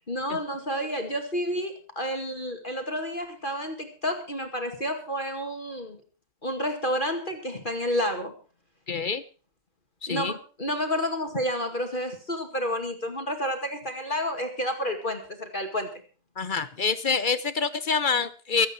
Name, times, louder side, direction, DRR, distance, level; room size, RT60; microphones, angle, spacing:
voice 1, 0.1-6.0 6.4-8.3 10.1-15.9, equal, 30° left, 5 dB, 2.3 m, -30 dB
voice 2, 8.9-9.2 10.0-10.3 16.4-18.7, left 5 dB, 45° left, 14 dB, 0.7 m, -26 dB
23.5 x 8.7 x 4.5 m, 0.37 s
omnidirectional pair, 1.9 m